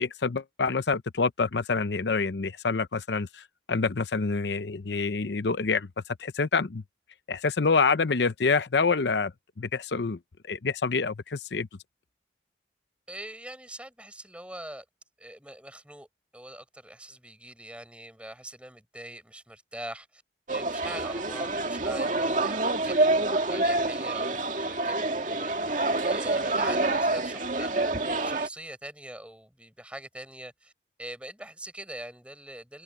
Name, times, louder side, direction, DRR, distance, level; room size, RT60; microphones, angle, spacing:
voice 1, 0.0-5.9 6.2-6.8 7.3-9.3 9.6-10.2 10.5-11.7, left 4 dB, 80° left, 0.7 m, -27 dB
voice 2, 13.1-14.9 15.2-16.1 16.3-20.2 20.5-27.8 28.2-30.7 31.0-32.8, right 1 dB, 5° right, 6.9 m, -43 dB
sound 1, 20.5-28.5, right 2 dB, 45° right, 2.2 m, -27 dB
head